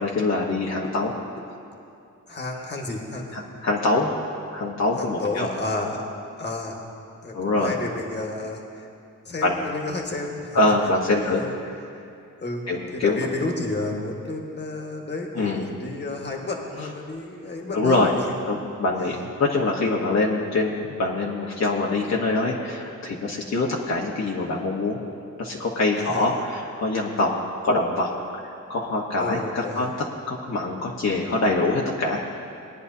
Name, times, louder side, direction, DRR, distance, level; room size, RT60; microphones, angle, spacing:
voice 1, 0.0-1.1 3.3-4.1 4.5-5.5 7.3-7.8 9.4-9.6 10.5-11.4 12.7-13.3 15.3-15.7 17.7-18.1 18.5-25.0 25.4-27.3 27.6-32.2, left 2 dB, 55° left, -3 dB, 1.2 m, -24 dB
voice 2, 2.3-3.4 5.0-6.0 6.4-6.8 7.2-8.9 9.2-10.7 11.0-11.5 12.4-12.6 12.9-18.2 26.0-26.3 29.2-29.9, left 2 dB, 35° left, 0 dB, 1.5 m, -31 dB
20.0 x 9.8 x 2.8 m, 2.5 s
cardioid pair, 100°, 31 cm